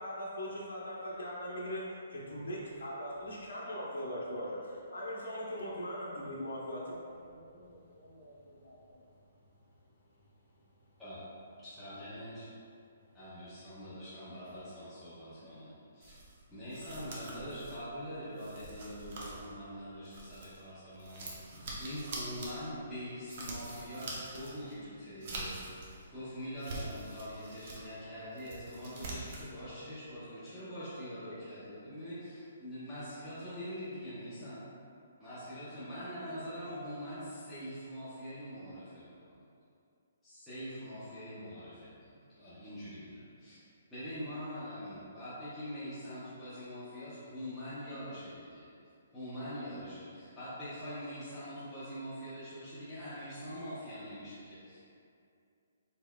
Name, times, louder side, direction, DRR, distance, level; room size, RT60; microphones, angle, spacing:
voice 1, 0.0-8.8, equal, 85° left, 0.8 m, -40 dB
voice 2, 7.3-11.0 12.7-13.2 15.1-15.7, equal, 35° left, 1.1 m, -66 dB
voice 3, 11.6-12.5 13.1-16.2 16.5-21.3 21.8-34.6 35.2-39.4 40.2-43.6 43.9-48.7 49.1-54.8, equal, 5° left, 0.8 m, -44 dB
sound 1, 16.0-20.6 20.9-26.1 26.4-27.9 28.2-29.5, right 2 dB, 40° right, 0.7 m, -45 dB
4.2 x 4.1 x 2.2 m
hypercardioid pair, 170°, 0 cm